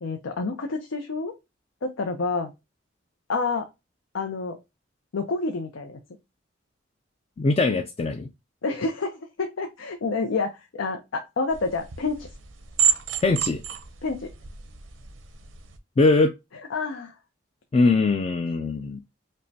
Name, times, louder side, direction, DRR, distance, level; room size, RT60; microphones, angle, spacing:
voice 1, 0.0-1.3 1.8-2.5 3.3-3.7 4.1-4.6 5.1-6.0 8.6-12.3 14.0-14.3 16.7-17.1, left 3 dB, 85° left, 0.5 m, -28 dB
voice 2, 7.4-8.3 13.2-13.6 16.0-16.3 17.7-19.0, left 3 dB, 30° left, 0.3 m, -21 dB
sound 1, 11.5-15.8, right 8 dB, 80° right, 0.6 m, -29 dB
5.3 x 2.1 x 2.7 m
head